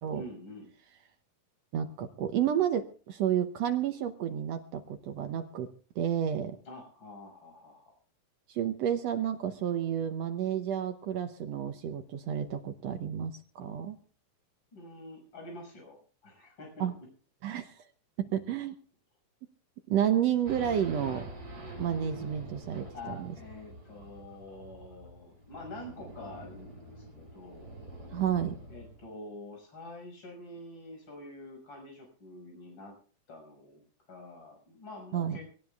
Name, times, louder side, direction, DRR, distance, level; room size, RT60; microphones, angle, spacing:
voice 1, 0.1-0.7 6.7-7.9 14.7-16.0 16.2-17.1 22.9-27.7 28.7-33.0 33.3-33.8 34.1-35.5, left 1 dB, 30° left, 1 dB, 6.6 m, -46 dB
voice 2, 1.7-5.7 5.9-6.6 8.5-14.0 16.8-16.9 17.4-17.8 18.2-18.7 19.9-21.3 21.8-23.3 28.1-28.6 35.1-35.4, right 9 dB, 80° right, 7 dB, 1.4 m, -31 dB
Race car auto racing / Idling / Accelerating revving vroom, 20.4-29.1, right 1 dB, 20° right, 5.7 m, -46 dB
24.0 x 17.5 x 2.4 m, 0.40 s
omnidirectional pair, 4.1 m